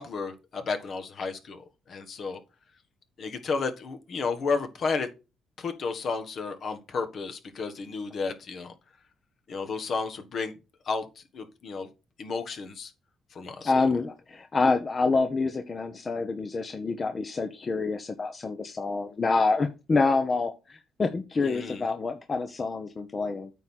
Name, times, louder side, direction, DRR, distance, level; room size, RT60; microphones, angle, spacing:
voice 1, 0.0-2.4 3.2-5.1 5.6-8.7 9.5-10.6 10.8-11.9 12.2-12.9 13.3-13.7 21.4-21.8, left 4 dB, 55° left, 1.4 m, -32 dB
voice 2, 13.6-23.5, left 3 dB, 35° left, 0.9 m, -27 dB
8.9 x 3.7 x 6.2 m
cardioid pair, 90°, 0 cm